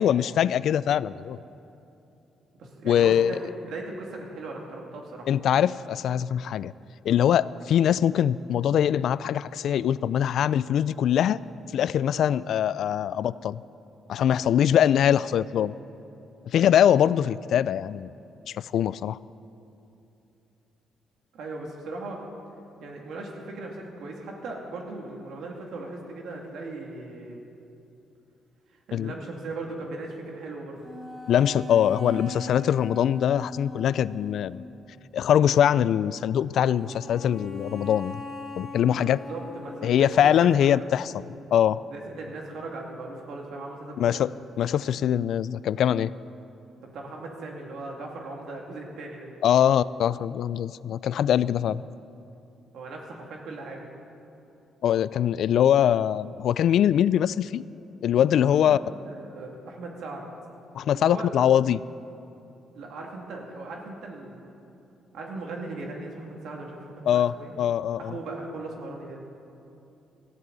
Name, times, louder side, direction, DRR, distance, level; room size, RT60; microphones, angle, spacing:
voice 1, 0.0-1.4 2.8-3.4 5.3-6.7 7.0-11.4 11.7-13.6 14.1-15.7 16.5-18.1 18.5-19.2 28.9-29.1 31.3-34.6 35.1-38.2 38.6-39.2 39.8-41.1 41.5-41.8 44.0-44.3 44.6-46.1 49.4-51.8 54.8-57.6 58.0-58.8 60.7-61.8 67.1-68.1, left 10 dB, 70° left, 19 dB, 0.3 m, -22 dB
voice 2, 2.6-5.3 21.3-22.2 22.8-27.4 28.9-30.9 39.0-40.9 41.9-44.3 46.8-49.3 52.7-53.9 58.5-58.8 59.0-60.3 60.9-61.3 62.7-64.4 65.1-67.5 68.0-69.2, right 2 dB, 75° right, 0 dB, 2.4 m, -38 dB
sound 1, 30.8-34.4 36.8-40.8, left 3 dB, 20° right, 3.6 m, -40 dB
18.5 x 14.0 x 4.0 m, 2.9 s
cardioid pair, 90°, 0 cm